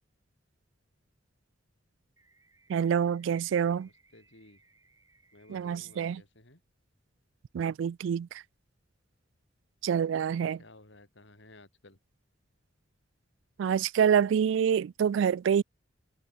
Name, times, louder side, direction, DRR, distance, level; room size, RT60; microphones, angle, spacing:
sound 1, 2.2-6.2, right 3 dB, 15° right, 3.9 m, -66 dB
voice 1, 2.7-3.9 5.5-6.2 7.5-8.4 9.8-10.6 13.6-15.6, right 8 dB, 70° right, 0.3 m, -26 dB
voice 2, 3.8-4.6 5.3-6.6 10.6-12.0, left 2 dB, 65° left, 4.2 m, -56 dB
head